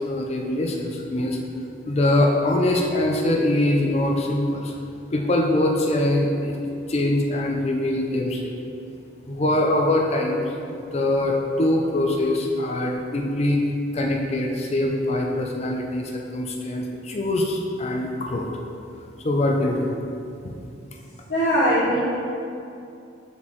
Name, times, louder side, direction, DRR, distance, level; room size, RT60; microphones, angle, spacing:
voice 1, 0.0-1.4 1.9-4.7 5.1-6.5 6.9-8.5 9.3-10.4 10.9-13.6 13.9-18.5 19.2-19.9, left 1 dB, 35° left, 1 dB, 0.4 m, -23 dB
voice 2, 21.3-22.0, equal, 50° left, -10 dB, 0.9 m, -20 dB
7.1 x 4.3 x 3.1 m, 2.6 s
head